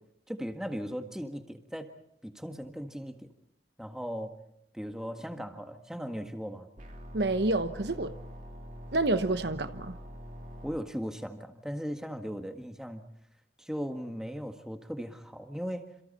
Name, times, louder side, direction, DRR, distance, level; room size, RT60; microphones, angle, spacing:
voice 1, 0.3-1.9 2.2-3.3 3.8-4.3 4.7-6.7 10.6-13.0 13.6-15.9, equal, 5° right, 5 dB, 1.7 m, -37 dB
sound 1, 6.8-10.8, equal, 45° right, 3.3 m, -44 dB
voice 2, 7.1-8.1 8.9-10.0, right 2 dB, 65° right, 10 dB, 1.1 m, -28 dB
28.5 x 28.0 x 4.3 m, 0.73 s
head